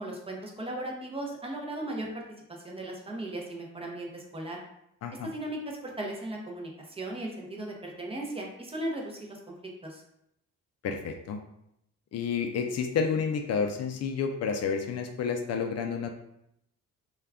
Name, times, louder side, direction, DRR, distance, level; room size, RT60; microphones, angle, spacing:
voice 1, 0.0-2.2 2.5-4.6 5.2-9.5 9.8-10.0, right 1 dB, 20° right, 0 dB, 0.6 m, -37 dB
voice 2, 10.8-11.4 12.1-16.1, left 6 dB, 55° left, 4 dB, 0.4 m, -30 dB
2.3 x 2.2 x 3.4 m, 0.78 s
cardioid pair, 90°, 30 cm